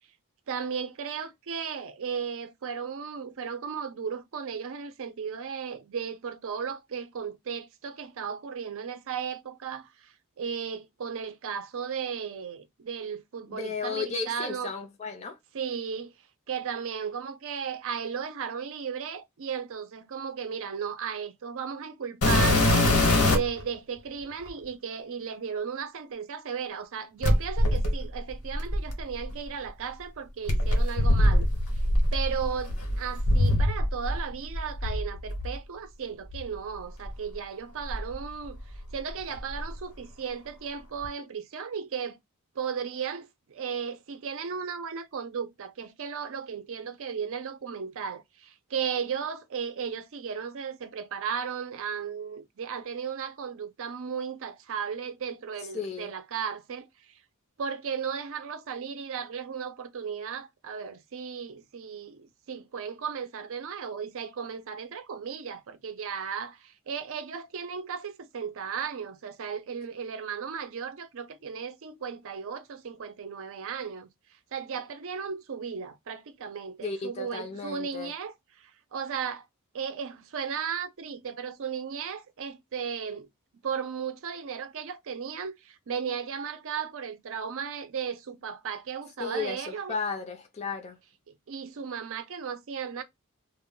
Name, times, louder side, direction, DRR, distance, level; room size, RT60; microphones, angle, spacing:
voice 1, 0.5-14.7 15.5-16.1 16.5-31.5 32.1-38.6 38.9-42.2 42.6-56.9 57.6-74.1 74.5-79.5 79.7-83.3 83.6-90.0 91.5-93.0, right 6 dB, 65° right, 0.5 m, -35 dB
voice 2, 13.5-15.4 55.7-56.1 76.8-78.1 89.2-91.0, left 4 dB, 30° left, 0.4 m, -34 dB
sound 1, 22.2-23.6 24.5-24.6 27.2-29.3 30.5-34.2 34.5-35.5 36.3-36.4 37.0-37.1 37.8-38.9 39.2-39.7 41.0-41.1, left 1 dB, 80° left, 1.0 m, -24 dB
2.2 x 2.0 x 3.6 m
head